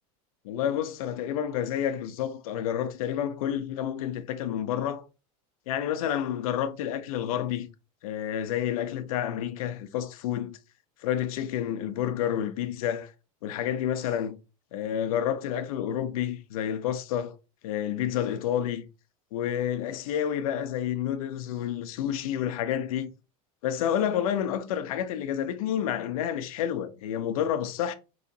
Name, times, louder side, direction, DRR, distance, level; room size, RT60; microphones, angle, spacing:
voice 1, 0.4-5.0 5.7-7.7 8.0-10.6 11.0-13.1 13.4-14.4 14.7-17.3 17.6-18.9 19.3-23.1 23.6-27.9, left 10 dB, 85° left, 0.7 m, -29 dB
4.9 x 3.1 x 2.7 m
supercardioid pair, 175°, 18 cm